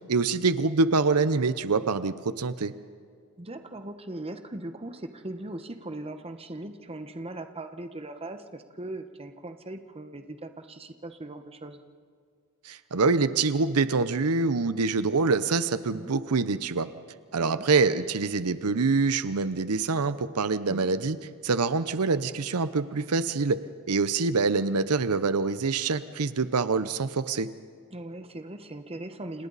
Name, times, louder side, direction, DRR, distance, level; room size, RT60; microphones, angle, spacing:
voice 1, 0.1-2.8 12.6-16.9 17.3-21.2 21.4-27.5, right 4 dB, 85° right, 13 dB, 0.8 m, -25 dB
voice 2, 3.4-11.8 15.9-16.1 17.4-17.7 20.7-20.9 27.9-29.5, right 1 dB, 25° right, 8 dB, 1.1 m, -39 dB
30.0 x 27.0 x 4.1 m, 2.2 s
head